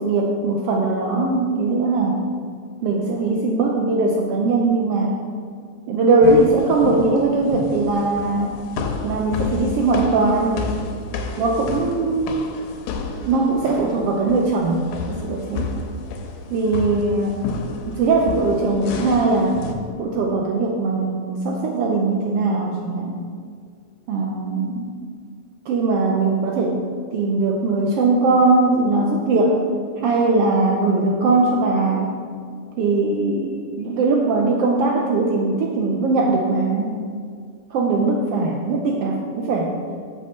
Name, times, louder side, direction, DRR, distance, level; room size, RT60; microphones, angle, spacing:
voice 1, 0.0-2.2 2.8-5.1 5.9-8.6 9.0-10.6 11.4-12.5 13.3-15.7 16.5-17.4 17.8-19.6 20.0-23.1 24.1-25.0 25.7-26.8 27.1-29.6 30.0-32.1 32.8-37.0 37.7-39.7, right 3 dB, 85° right, 0 dB, 1.3 m, -20 dB
sound 1, 6.2-19.7, left 3 dB, 85° left, 2.0 m, -31 dB
6.7 x 5.4 x 6.5 m, 2.1 s
omnidirectional pair, 3.4 m